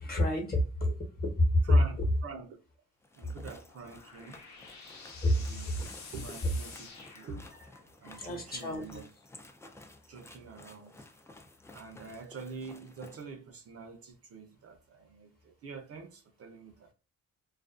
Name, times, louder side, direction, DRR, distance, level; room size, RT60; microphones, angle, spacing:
voice 1, 0.0-1.7 3.2-3.3 5.2-5.9 6.4-6.5 8.0-9.0, left 1 dB, 30° left, 1.0 m, -29 dB
voice 2, 2.2-2.6 3.2-4.4 5.3-5.7 6.1-6.9 7.2-7.5 8.0-9.1 10.1-11.1 11.7-16.9, right 5 dB, 50° right, 0.6 m, -45 dB
sound 1, 3.0-13.2, left 2 dB, 10° left, 0.3 m, -54 dB
sound 2, 3.6-7.9, left 4 dB, 65° left, 0.9 m, -49 dB
2.4 x 2.3 x 2.4 m
cardioid pair, 90°, 30 cm